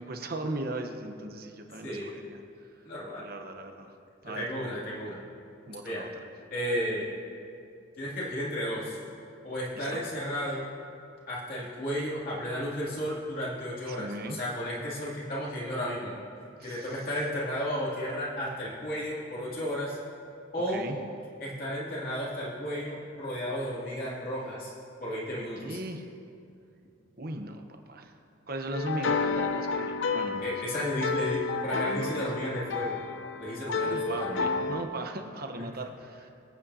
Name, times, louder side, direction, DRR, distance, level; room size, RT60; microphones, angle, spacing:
voice 1, 0.0-2.4 3.2-3.9 4.2-4.4 5.7-6.3 9.7-10.0 13.9-14.4 16.6-17.0 20.7-21.0 25.6-26.1 27.2-27.6 27.9-28.1 28.5-31.0 31.7-32.1 33.8-36.3, right 2 dB, 50° right, 5 dB, 1.0 m, -38 dB
voice 2, 1.8-2.2 2.8-3.3 4.2-5.2 5.8-6.0 6.5-7.1 8.0-9.0 9.4-10.7 11.3-16.1 16.6-20.0 20.5-20.8 21.4-24.7 25.0-25.8 30.4-33.0 33.4-34.5, equal, 45° left, -7 dB, 2.8 m, -33 dB
sound 1, 28.7-34.8, left 4 dB, 75° left, 0.6 m, -31 dB
25.0 x 8.6 x 2.8 m, 2.6 s
head